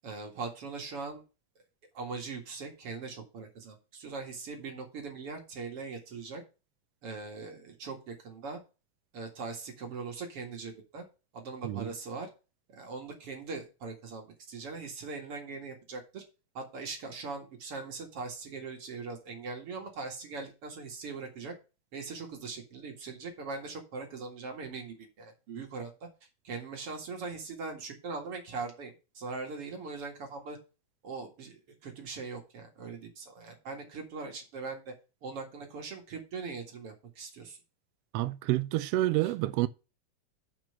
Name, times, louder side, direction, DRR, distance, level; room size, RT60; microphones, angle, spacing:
voice 1, 0.0-1.2 1.9-6.4 7.0-8.6 9.1-11.1 11.3-12.3 12.7-16.2 16.5-21.5 21.9-26.1 26.4-30.6 31.0-34.9 35.2-37.6 39.2-39.3, right 4 dB, 50° right, 2.7 m, -41 dB
voice 2, 38.1-39.7, right 16 dB, 80° right, 1.4 m, -28 dB
6.2 x 6.0 x 6.8 m
omnidirectional pair, 3.4 m